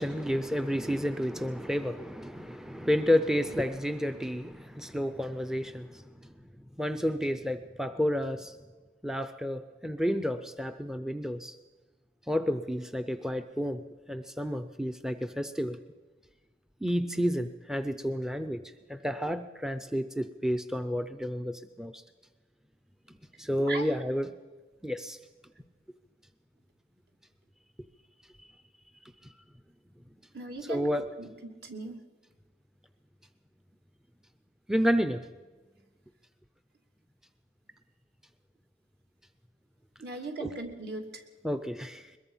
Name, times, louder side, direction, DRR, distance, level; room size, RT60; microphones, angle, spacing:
voice 1, 0.0-6.0 6.8-8.6 9.0-11.6 12.3-13.8 14.1-15.8 16.8-18.6 18.9-22.0 23.4-24.3 24.8-25.2 29.0-29.3 30.6-31.1 34.7-35.3 40.4-40.5 41.4-42.1, equal, 5° right, 10 dB, 0.6 m, -30 dB
voice 2, 30.3-30.9 31.2-31.3 31.6-32.0 40.0-41.2, right 2 dB, 60° right, 3 dB, 2.8 m, -38 dB
22.0 x 21.0 x 5.6 m, 1.3 s
head